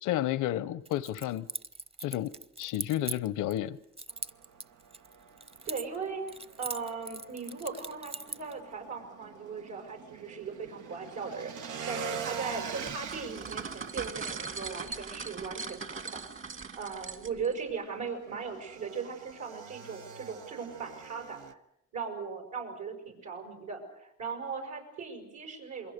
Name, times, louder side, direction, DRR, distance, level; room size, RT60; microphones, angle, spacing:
voice 1, 0.0-1.5 2.0-3.8, left 13 dB, 90° left, 17 dB, 0.9 m, -31 dB
Keys jangling, 0.9-3.6 4.0-6.0 6.3-8.5, right 3 dB, 20° right, 0.9 m, -40 dB
Motorcycle / Engine, 4.1-21.5, right 7 dB, 90° right, 1.2 m, -45 dB
voice 2, 5.6-6.2 6.6-21.6 21.9-25.9, right 5 dB, 75° right, 3 dB, 6.5 m, -38 dB
sound 1, 12.9-17.5, right 5 dB, 45° right, 2.3 m, -40 dB
28.0 x 22.0 x 6.7 m, 0.77 s
cardioid pair, 90°, 30 cm